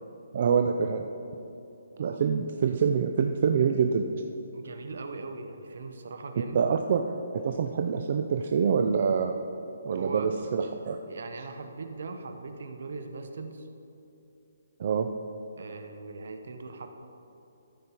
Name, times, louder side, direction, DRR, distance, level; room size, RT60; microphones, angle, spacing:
voice 1, 0.3-1.1 2.0-4.1 6.5-7.0 7.3-9.4 9.8-11.0 14.8-15.1, right 6 dB, 45° right, 5 dB, 0.4 m, -25 dB
voice 2, 4.5-6.7 9.9-10.3 11.1-13.7 15.6-16.9, right 3 dB, 65° right, 6 dB, 0.9 m, -40 dB
13.5 x 5.3 x 4.4 m, 2.9 s
hypercardioid pair, 165°, 0 cm